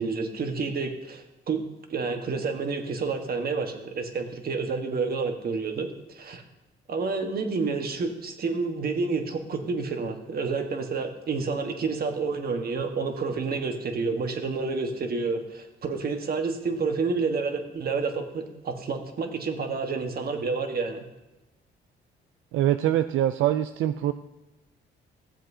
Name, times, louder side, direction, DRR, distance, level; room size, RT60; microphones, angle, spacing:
voice 1, 0.0-1.6 1.9-6.4 6.9-21.1, right 4 dB, 50° right, 5 dB, 1.4 m, -29 dB
voice 2, 22.5-24.1, right 12 dB, 80° right, 10 dB, 0.4 m, -24 dB
15.0 x 7.5 x 2.8 m, 1.0 s
cardioid pair, 90°, 20 cm